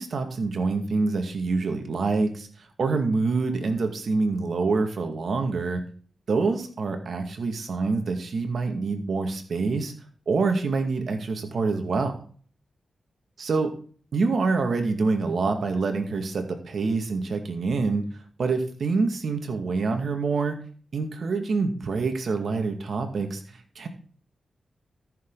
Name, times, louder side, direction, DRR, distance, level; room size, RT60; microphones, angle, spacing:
voice 1, 0.0-2.5 2.8-5.8 6.3-9.9 10.3-12.2 13.4-13.7 14.1-18.0 18.4-20.6 20.9-23.9, right 4 dB, 70° right, 5 dB, 2.3 m, -26 dB
14.0 x 7.1 x 4.1 m, 0.43 s
cardioid pair, 65°, 0 cm